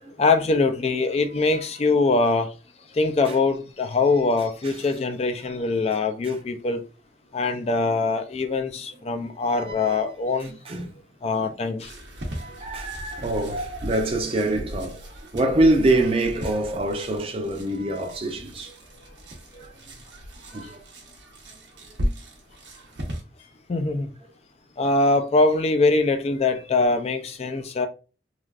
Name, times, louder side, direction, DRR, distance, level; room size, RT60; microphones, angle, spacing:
voice 1, 0.2-2.5 2.9-6.8 7.3-10.5 11.2-11.9 19.5-19.6 23.7-24.1 24.8-27.9, left 3 dB, 35° left, 0.3 m, -23 dB
voice 2, 9.2-10.0 10.7-10.9 12.3-15.1 15.3-18.7 19.6-19.7 20.5-20.8, right 1 dB, 30° right, 0.5 m, -25 dB
sound 1, 11.8-23.2, equal, 75° right, 0.9 m, -36 dB
3.3 x 2.4 x 2.3 m
head